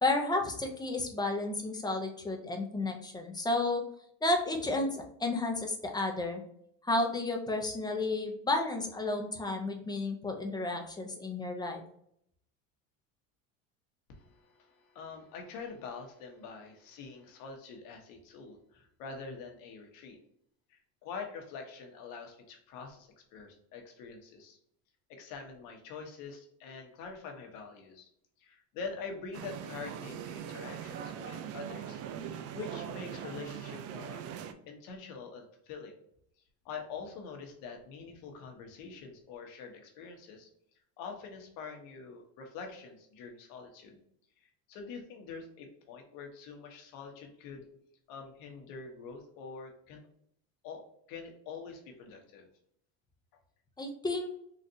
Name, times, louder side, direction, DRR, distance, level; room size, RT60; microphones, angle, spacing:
voice 1, 0.0-3.8 4.2-6.4 6.8-11.8 53.8-54.3, left 2 dB, 10° left, 2 dB, 0.6 m, -32 dB
voice 2, 14.1-20.2 20.7-24.6 25.1-28.1 28.4-32.0 32.3-34.2 34.7-36.0 36.6-40.5 41.0-44.0 44.4-47.7 48.1-50.0 50.6-50.8 51.1-52.5, left 5 dB, 70° left, 3 dB, 1.1 m, -45 dB
sound 1, 29.3-34.5, right 9 dB, 45° right, 0.4 m, -41 dB
3.9 x 2.5 x 2.7 m, 0.71 s
supercardioid pair, 120°, 36 cm